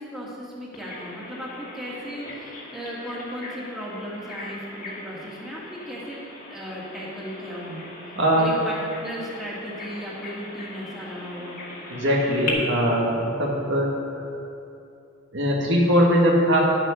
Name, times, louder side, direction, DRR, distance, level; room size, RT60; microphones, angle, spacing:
voice 1, 0.0-6.2 6.5-7.9 8.4-11.8, equal, ahead, -6 dB, 2.1 m, -36 dB
Bird vocalization bird call bird song, 0.7-12.5, left 3 dB, 45° left, 2.0 m, -40 dB
voice 2, 8.2-8.5 11.9-14.2 15.3-16.6, equal, 65° right, -2 dB, 1.9 m, -21 dB
11.0 x 7.8 x 6.4 m, 2.7 s
head